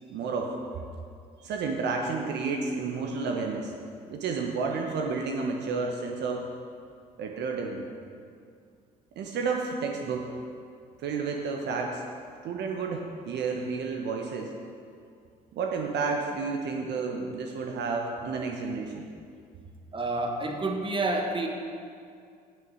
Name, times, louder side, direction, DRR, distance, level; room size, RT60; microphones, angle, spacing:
voice 1, 0.1-0.5 1.4-3.7 4.1-6.4 7.2-7.8 9.2-10.3 11.0-12.0 12.4-14.5 15.5-19.1, right 4 dB, 55° right, 1 dB, 1.0 m, -31 dB
voice 2, 19.9-21.5, right 2 dB, 25° right, 3 dB, 1.4 m, -29 dB
9.1 x 6.4 x 6.4 m, 2.3 s
hypercardioid pair, 50°, 21 cm